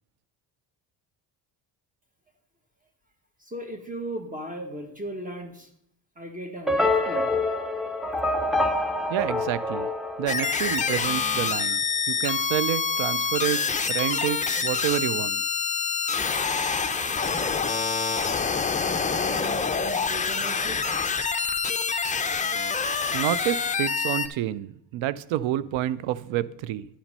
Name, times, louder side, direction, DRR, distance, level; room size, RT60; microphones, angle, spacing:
voice 1, 3.4-5.7 6.1-7.3 18.8-20.8, right 1 dB, 15° right, 5 dB, 1.5 m, -37 dB
sound 1, 6.7-11.0, left 2 dB, ahead, 0.9 m, -26 dB
voice 2, 9.1-9.9 10.2-11.8 12.1-15.4 23.1-26.9, right 13 dB, 80° right, 18 dB, 0.6 m, -28 dB
sound 2, 10.3-24.3, left 5 dB, 15° left, 0.6 m, -26 dB
10.0 x 5.9 x 5.4 m, 0.74 s
cardioid pair, 95°, 46 cm